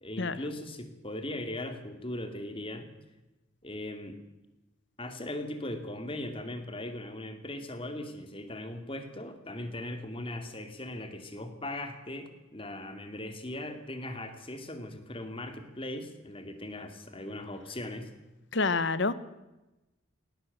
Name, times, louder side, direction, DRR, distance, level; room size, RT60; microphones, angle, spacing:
voice 1, 0.0-2.9 3.6-4.2 5.0-18.1, left 1 dB, 25° left, 8 dB, 2.5 m, -39 dB
voice 2, 18.5-19.1, left 3 dB, 60° left, 16 dB, 1.1 m, -27 dB
18.5 x 18.5 x 8.0 m, 1.0 s
head